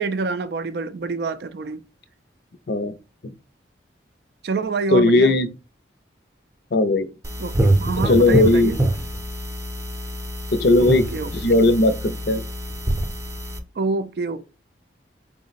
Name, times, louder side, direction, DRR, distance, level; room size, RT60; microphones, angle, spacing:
voice 1, 0.0-1.8 4.4-5.4 7.4-7.5 7.8-8.8 10.8-11.6 13.8-14.4, right 4 dB, 60° right, 0.3 m, -27 dB
voice 2, 4.9-5.5 6.7-7.1 8.1-8.7 10.5-11.1 11.3-12.4, left 2 dB, 55° left, 0.5 m, -17 dB
sound 1, 7.2-13.6, right 1 dB, 15° right, 0.6 m, -25 dB
4.7 x 2.1 x 3.9 m
head